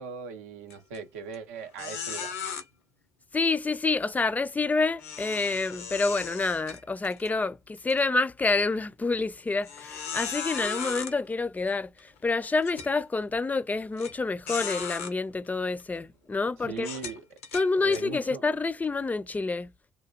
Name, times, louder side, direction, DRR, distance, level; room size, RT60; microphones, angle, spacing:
voice 1, 0.0-2.3 16.7-17.2 17.8-18.4, right 5 dB, 85° right, 0.5 m, -39 dB
sound 1, 0.7-1.0 1.3-1.4 1.8-2.6 5.0-7.3 7.8-7.9 8.6-8.7 9.7-11.1 12.0-12.1 12.6-12.9 14.0-14.1 14.5-15.1 15.8-16.0 16.8-18.0, left 7 dB, 90° left, 0.5 m, -36 dB
voice 2, 3.3-16.9 17.5-19.7, left 3 dB, 20° left, 0.4 m, -28 dB
2.8 x 2.3 x 2.2 m
hypercardioid pair, 50°, 7 cm